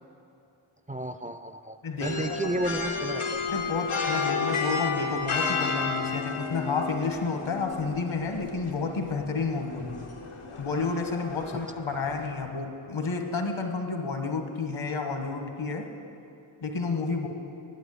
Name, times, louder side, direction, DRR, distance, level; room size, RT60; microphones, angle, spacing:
voice 1, 0.9-3.4 11.5-11.6, right 1 dB, 20° right, 9 dB, 0.3 m, -32 dB
voice 2, 1.8-2.2 3.5-10.0 10.6-15.9 16.6-17.3, left 4 dB, 70° left, 4 dB, 1.5 m, -30 dB
sound 1, 2.0-12.3, left 4 dB, 90° left, 1.3 m, -32 dB
10.0 x 8.4 x 9.5 m, 2.6 s
wide cardioid pair, 95°, 49 cm